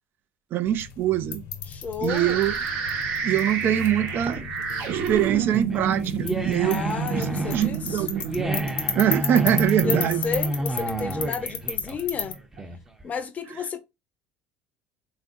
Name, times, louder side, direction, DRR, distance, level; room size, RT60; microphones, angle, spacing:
voice 1, 0.5-1.4 2.0-2.5 3.2-4.4 4.9-6.8 7.2-8.3 8.9-10.2, right 11 dB, 55° right, 0.3 m, -23 dB
sound 1, 0.6-12.3, left 6 dB, 80° left, 0.9 m, -35 dB
voice 2, 1.7-2.4 6.6-8.0 9.8-12.4 13.0-13.8, left 5 dB, 35° left, 0.6 m, -32 dB
sound 2, 2.1-10.0, right 6 dB, 70° right, 0.8 m, -30 dB
sound 3, 4.0-13.0, right 1 dB, 10° right, 0.6 m, -30 dB
3.6 x 2.5 x 2.5 m
supercardioid pair, 95°, 4 cm